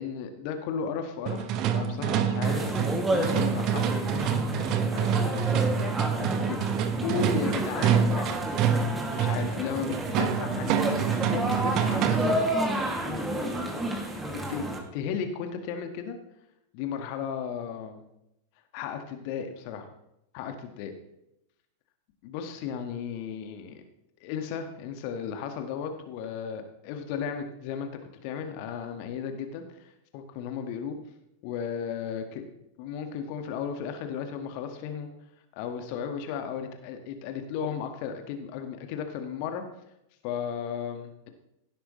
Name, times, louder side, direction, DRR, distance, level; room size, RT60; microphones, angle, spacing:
voice 1, 0.0-5.9 6.2-6.6 7.0-8.4 9.2-12.5 13.0-13.8 14.2-14.6 14.9-16.2 16.7-18.0 18.7-19.9 20.3-20.9 22.2-23.8 24.2-27.9 28.2-31.0 31.4-32.4 32.8-35.1 35.5-39.6 40.2-41.3, left 7 dB, 45° left, 6 dB, 1.8 m, -35 dB
sound 1, 1.3-12.5, right 7 dB, 40° right, 1.2 m, -27 dB
sound 2, 2.4-14.8, right 1 dB, 10° right, 2.4 m, -31 dB
16.5 x 11.5 x 3.2 m, 0.82 s
figure-of-eight pair, 90°, 0 cm